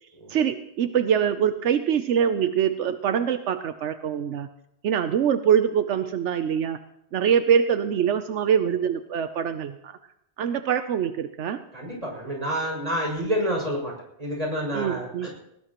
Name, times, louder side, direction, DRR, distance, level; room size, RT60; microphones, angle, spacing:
voice 1, 0.3-4.5 4.8-6.8 7.1-10.0 10.4-11.6 14.7-15.3, right 8 dB, 85° right, 9 dB, 1.0 m, -24 dB
voice 2, 11.7-15.3, equal, 35° right, -2 dB, 6.8 m, -28 dB
21.0 x 19.0 x 3.0 m, 0.82 s
omnidirectional pair, 1.2 m